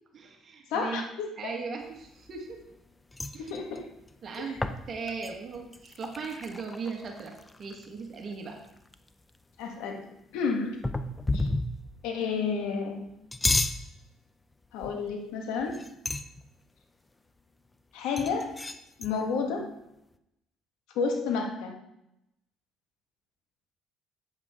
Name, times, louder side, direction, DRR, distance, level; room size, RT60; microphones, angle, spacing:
voice 1, 0.1-1.0 1.4-2.6 3.3-3.5 4.2-4.6 4.9-8.6, right 4 dB, 50° right, 2 dB, 1.6 m, -38 dB
voice 2, 0.7-1.5 3.4-3.9 4.4-4.5 9.6-10.1 10.3-10.9 11.3-11.5 12.0-13.1 14.7-15.8 17.9-18.5 19.0-19.7 20.9-21.8, left 5 dB, 85° left, 2 dB, 1.5 m, -31 dB
sound 1, 2.0-2.8 3.1-8.0 8.3-8.4 8.6-9.4 10.8-12.0 13.1-13.9 14.8-15.1 15.6-16.4 18.2-19.1, left 2 dB, 15° left, 0.5 m, -32 dB
8.8 x 7.5 x 3.6 m, 0.85 s
cardioid pair, 90°, 0 cm